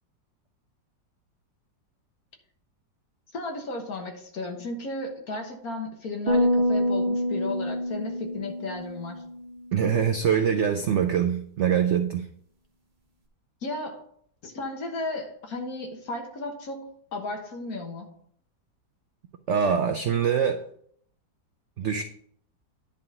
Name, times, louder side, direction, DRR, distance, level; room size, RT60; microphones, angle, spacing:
voice 1, 3.3-9.2 13.6-14.0 14.4-18.1, left 2 dB, 60° left, 1.7 m, -34 dB
sound 1, 6.3-9.7, left 1 dB, 40° right, 1.4 m, -26 dB
voice 2, 9.7-12.3 19.5-20.6 21.8-22.0, right 7 dB, 80° right, 0.6 m, -24 dB
10.0 x 3.7 x 5.5 m
omnidirectional pair, 1.8 m